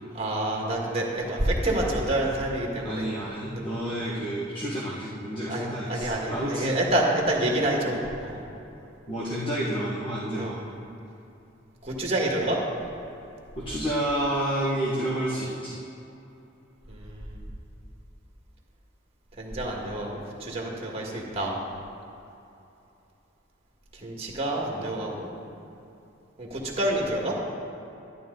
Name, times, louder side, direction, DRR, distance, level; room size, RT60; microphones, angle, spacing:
voice 1, 0.1-3.1 3.6-3.7 5.5-8.4 10.4-10.5 11.8-12.6 16.9-17.2 19.4-21.5 24.0-25.3 26.4-27.3, right 1 dB, 30° right, -1 dB, 1.7 m, -28 dB
voice 2, 2.8-6.8 7.8-8.0 9.1-10.6 13.6-15.8, right 1 dB, 25° left, -9 dB, 1.5 m, -30 dB
12.0 x 11.0 x 3.9 m, 2.8 s
head